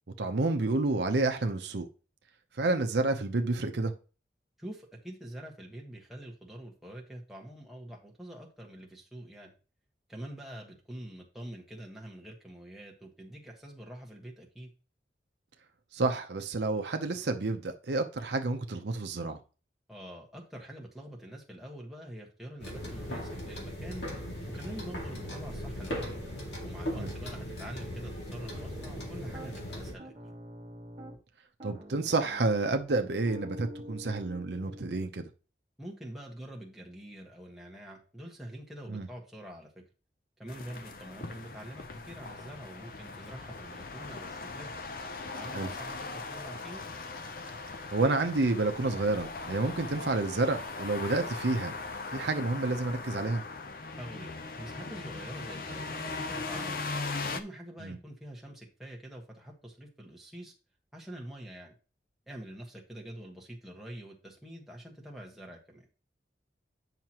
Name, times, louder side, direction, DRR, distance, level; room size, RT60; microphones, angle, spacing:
voice 1, 0.2-1.9 2.6-3.9 15.9-19.4 26.9-27.1 31.6-35.3 38.9-39.1 45.5-45.7 47.9-51.7 52.1-53.4 57.8-58.0, right 2 dB, 75° right, 0.7 m, -29 dB
voice 2, 4.6-9.5 10.1-14.7 19.9-24.0 24.5-26.2 26.6-30.3 35.8-39.8 40.4-44.7 45.2-46.8 54.0-56.9 57.3-60.5 60.9-61.7 62.3-65.9, right 1 dB, ahead, 1.4 m, -45 dB
sound 1, 22.6-29.9, equal, 75° left, 2.2 m, -38 dB
Piano, 28.5-29.5 30.0-31.2 31.6-35.0, equal, 35° right, 1.4 m, -46 dB
sound 2, 40.5-57.4, left 3 dB, 50° left, 0.6 m, -39 dB
9.2 x 5.8 x 3.0 m
head